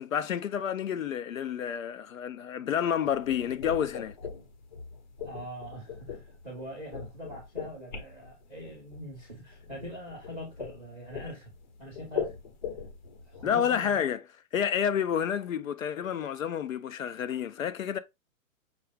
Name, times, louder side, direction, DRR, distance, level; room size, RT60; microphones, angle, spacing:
voice 1, 0.0-4.2 13.4-14.2 14.5-18.0, left 8 dB, 65° left, 0.6 m, -29 dB
sound 1, 3.0-13.6, left 6 dB, 30° left, 0.9 m, -41 dB
voice 2, 5.2-11.5 11.8-12.3 13.3-14.1, equal, ahead, 0.6 m, -43 dB
6.0 x 2.5 x 3.3 m
hypercardioid pair, 170°, 43 cm